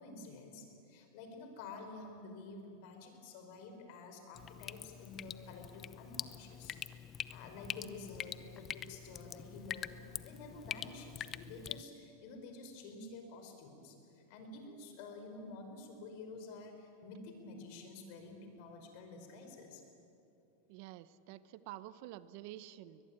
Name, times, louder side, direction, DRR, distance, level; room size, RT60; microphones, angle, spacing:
voice 1, 0.0-6.8 7.3-19.8, left 3 dB, 60° left, 5 dB, 5.2 m, -50 dB
Drip, 4.4-11.8, left 9 dB, 30° left, 0.8 m, -45 dB
voice 2, 20.7-23.1, right 14 dB, 60° right, 16 dB, 0.9 m, -49 dB
23.0 x 20.5 x 9.0 m, 2.8 s
hypercardioid pair, 115°, 0 cm